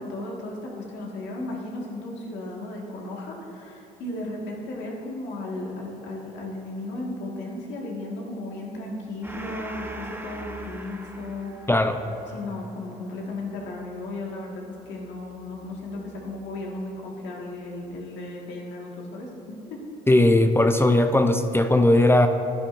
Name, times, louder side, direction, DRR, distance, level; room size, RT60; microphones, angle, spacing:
voice 1, 0.0-11.5 12.3-19.8, left 2 dB, 75° left, -2 dB, 1.8 m, -35 dB
Gong, 9.2-16.2, right 2 dB, 10° right, 1.0 m, -42 dB
voice 2, 20.1-22.3, left 1 dB, 10° left, 7 dB, 0.5 m, -18 dB
11.5 x 10.0 x 2.6 m, 2.8 s
supercardioid pair, 65°, 19 cm